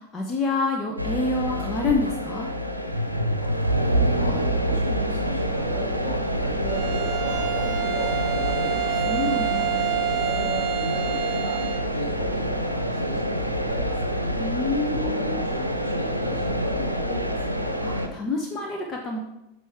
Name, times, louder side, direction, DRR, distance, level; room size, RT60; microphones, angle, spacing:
voice 1, 0.0-2.5 9.1-9.9 14.4-15.4 17.8-19.2, left 3 dB, 20° left, 0 dB, 1.0 m, -27 dB
sound 1, 1.0-18.1, equal, 85° right, 0.7 m, -26 dB
voice 2, 4.1-8.8 10.1-14.2 14.8-17.8, equal, 70° left, -2 dB, 2.2 m, -36 dB
Bowed string instrument, 6.7-11.9, right 15 dB, 35° right, 1.7 m, -29 dB
8.6 x 6.1 x 3.6 m, 0.89 s
figure-of-eight pair, 90°, 0 cm